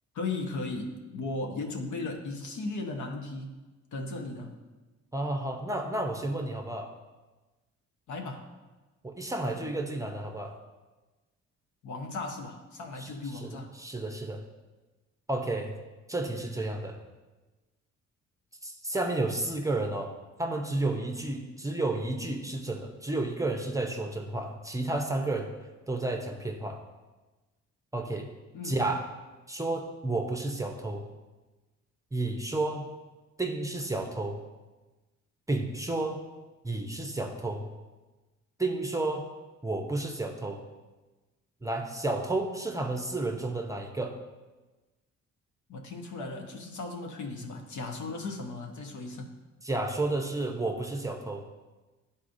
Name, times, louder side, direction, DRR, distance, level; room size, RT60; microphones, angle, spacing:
voice 1, 0.1-3.6 3.9-4.6 8.1-8.5 11.8-13.7 28.5-28.8 45.7-49.3, left 3 dB, 70° left, 2 dB, 1.0 m, -36 dB
voice 2, 5.1-6.9 9.0-10.6 13.0-13.1 13.4-13.5 13.8-14.4 15.3-15.8 16.1-17.0 18.6-20.1 20.4-25.5 25.9-26.8 27.9-28.3 28.6-29.0 29.5-31.0 32.1-32.9 33.4-34.4 35.5-36.2 36.6-37.7 38.6-39.3 39.6-40.6 41.6-44.2 49.6-51.5, right 2 dB, 10° right, 3 dB, 0.7 m, -31 dB
10.5 x 4.1 x 2.6 m, 1.2 s
cardioid pair, 90°, 30 cm